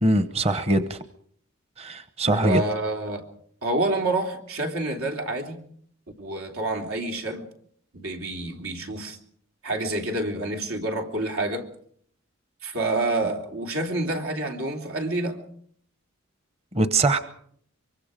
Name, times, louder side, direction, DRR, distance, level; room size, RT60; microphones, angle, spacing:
voice 1, 0.0-1.0 1.8-2.6 16.7-17.2, right 2 dB, 30° right, 11 dB, 0.9 m, -22 dB
voice 2, 2.4-3.3 3.6-5.6 6.2-7.5 7.9-9.2 9.6-11.7 12.6-15.4, right 2 dB, 90° right, 3 dB, 3.3 m, -28 dB
24.0 x 24.0 x 5.1 m, 0.64 s
head